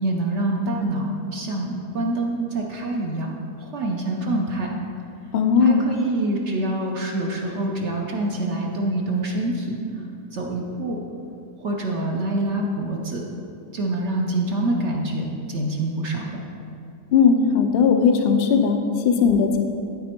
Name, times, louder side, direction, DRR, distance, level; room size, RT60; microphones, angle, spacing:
voice 1, 0.0-4.7 5.6-10.0 10.3-11.0 11.6-13.2 13.7-16.4, right 2 dB, 55° right, 0 dB, 0.9 m, -26 dB
voice 2, 5.3-5.8 17.1-19.6, left 6 dB, 65° left, 5 dB, 0.6 m, -18 dB
12.5 x 4.2 x 4.4 m, 2.7 s
omnidirectional pair, 1.8 m